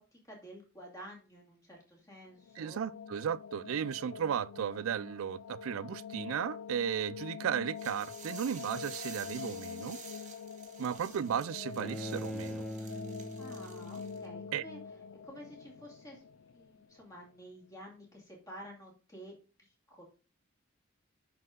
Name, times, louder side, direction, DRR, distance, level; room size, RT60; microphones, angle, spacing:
voice 1, 0.0-2.8 13.4-14.8 15.2-16.2 16.5-20.0, equal, 15° left, 2.4 m, -51 dB
sound 1, 2.3-17.2, left 6 dB, 90° left, 0.4 m, -46 dB
voice 2, 2.6-10.0 10.8-12.6 14.5-14.7, right 8 dB, 90° right, 0.4 m, -35 dB
sound 2, 7.8-14.3, right 6 dB, 35° right, 1.4 m, -51 dB
Bowed string instrument, 11.8-14.8, left 1 dB, ahead, 0.3 m, -42 dB
10.5 x 4.4 x 3.7 m
head